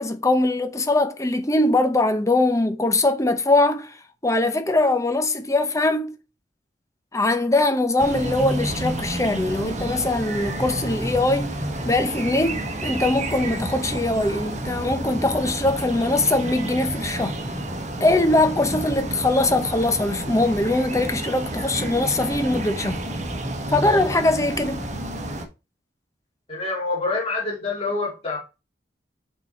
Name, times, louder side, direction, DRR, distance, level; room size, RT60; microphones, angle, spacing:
voice 1, 0.0-4.0 4.2-6.2 7.1-11.6 11.8-17.4 18.0-23.0 23.7-24.9, left 2 dB, 20° left, 0.8 m, -22 dB
sound 1, 8.0-25.4, right 1 dB, 40° right, 1.3 m, -30 dB
voice 2, 26.5-28.4, left 3 dB, 35° left, 2.8 m, -26 dB
6.0 x 4.7 x 4.3 m
head